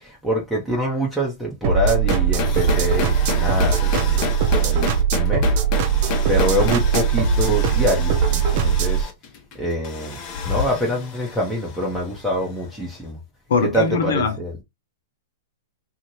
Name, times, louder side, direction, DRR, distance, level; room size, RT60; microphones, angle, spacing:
voice 1, 0.0-4.3 4.6-5.5 6.3-9.1 9.6-13.2 13.6-14.5, equal, 5° right, 1.0 m, -25 dB
sound 1, 1.6-9.0, right 6 dB, 50° right, 0.7 m, -20 dB
sound 2, 1.9-12.7, left 5 dB, 40° left, 1.1 m, -30 dB
voice 2, 13.5-14.4, left 5 dB, 70° left, 0.9 m, -21 dB
2.7 x 2.7 x 3.0 m
hypercardioid pair, 115°, 0 cm